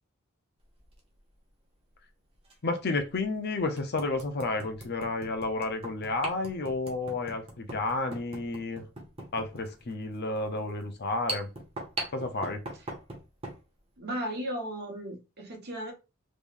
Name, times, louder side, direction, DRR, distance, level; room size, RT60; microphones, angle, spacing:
sound 1, 0.8-1.0 2.4-2.5 3.1-3.2 3.8-13.6, right 2 dB, 30° right, 1.1 m, -41 dB
voice 1, 2.6-8.8 9.3-11.5 12.1-12.6, left 2 dB, 50° left, 0.7 m, -31 dB
voice 2, 14.0-15.9, equal, 50° right, 1.2 m, -35 dB
3.6 x 3.1 x 2.5 m
head